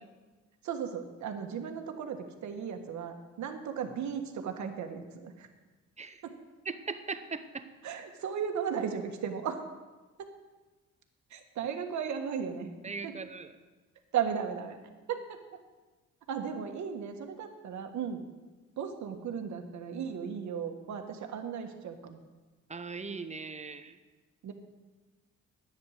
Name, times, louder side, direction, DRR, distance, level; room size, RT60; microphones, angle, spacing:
voice 1, 0.6-5.5 6.2-6.4 7.8-9.6 10.2-10.3 11.3-12.7 13.0-13.1 14.1-14.8 15.1-15.4 16.3-18.2 18.8-22.2 24.4-24.5, right 7 dB, 70° right, 5 dB, 1.5 m, -36 dB
voice 2, 6.7-7.7 12.8-13.5 22.7-24.0, right 4 dB, 25° right, 10 dB, 0.9 m, -39 dB
11.0 x 9.2 x 6.5 m, 1.3 s
cardioid pair, 90°, 30 cm